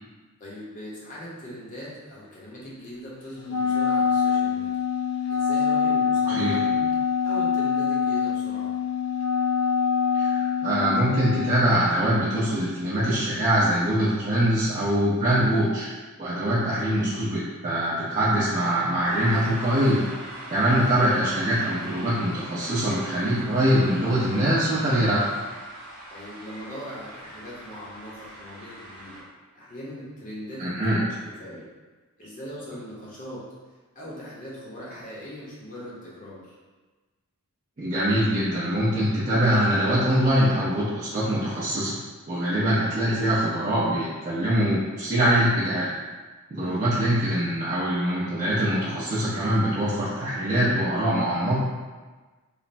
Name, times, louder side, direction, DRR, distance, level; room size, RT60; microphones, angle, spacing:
voice 1, 0.4-4.8 5.3-7.0 7.2-8.7 10.3-10.4 16.5-16.9 20.6-20.8 26.1-29.2 29.5-31.7 32.2-33.4 33.9-36.6 46.6-46.9 50.8-51.0, equal, 35° left, -6 dB, 0.7 m, -40 dB
Wind instrument woodwind instrument, 3.4-11.6, left 7 dB, 70° left, 0.3 m, -24 dB
voice 2, 10.1-15.9 16.2-20.0 20.5-25.3 30.6-31.0 37.8-42.0 42.3-45.9 46.5-51.6, right 1 dB, 35° right, -11 dB, 0.5 m, -23 dB
sound 1, 19.1-29.2, right 1 dB, 85° right, 0.9 m, -42 dB
3.2 x 2.0 x 2.5 m, 1.3 s
head